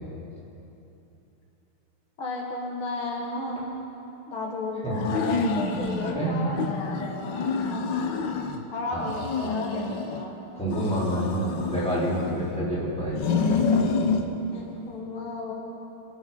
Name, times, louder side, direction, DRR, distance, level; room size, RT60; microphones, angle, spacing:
voice 1, 2.2-3.7 4.3-9.8 10.1-10.4 14.5-15.5, left 2 dB, 80° left, -1 dB, 2.6 m, -34 dB
sound 1, 4.9-6.2 6.5-8.6 9.0-10.3 10.7-12.6 13.1-14.3, left 4 dB, 65° left, 1.5 m, -28 dB
voice 2, 6.0-6.6 8.9-9.1 10.5-13.2 13.5-13.6, right 1 dB, 5° left, -9 dB, 4.2 m, -28 dB
25.0 x 8.8 x 5.7 m, 3.0 s
omnidirectional pair, 2.3 m